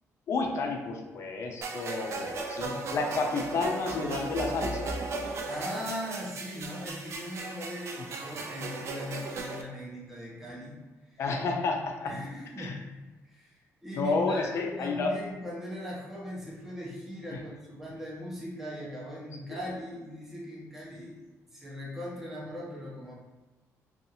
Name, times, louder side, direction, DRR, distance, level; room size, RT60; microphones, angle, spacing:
voice 1, 0.3-5.0 11.2-12.1 12.6-12.7 14.0-15.1, left 3 dB, 55° left, 2 dB, 0.4 m, -30 dB
sound 1, 1.6-9.6, right 3 dB, 55° right, 0.3 m, -36 dB
voice 2, 5.4-10.8 11.0-11.2 12.1-21.2 21.5-23.1, equal, 5° right, -5 dB, 0.6 m, -39 dB
2.7 x 2.3 x 2.6 m, 1.2 s
cardioid pair, 130°, 6 cm